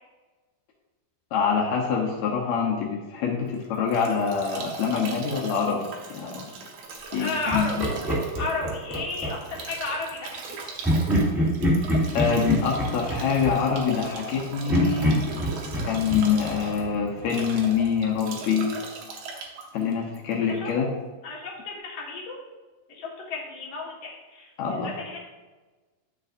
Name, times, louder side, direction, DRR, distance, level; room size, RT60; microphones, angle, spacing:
voice 1, 1.3-5.8 6.1-6.4 7.1-7.9 12.1-15.2 15.8-18.7 19.7-20.9 24.6-24.9, left 6 dB, 85° left, -2 dB, 1.6 m, -25 dB
Bathtub (filling or washing) / Drip / Trickle dribble, 3.5-20.7, right 4 dB, 70° right, 1.8 m, -39 dB
voice 2, 7.2-7.8 8.4-10.4 20.6-20.7 21.2-22.4 22.9-24.5, left 3 dB, 50° left, -4 dB, 2.1 m, -32 dB
Laughter, 7.5-9.6 10.8-14.3 14.7-17.4, equal, ahead, 1.3 m, -26 dB
10.5 x 6.7 x 2.6 m, 1.2 s
omnidirectional pair, 4.6 m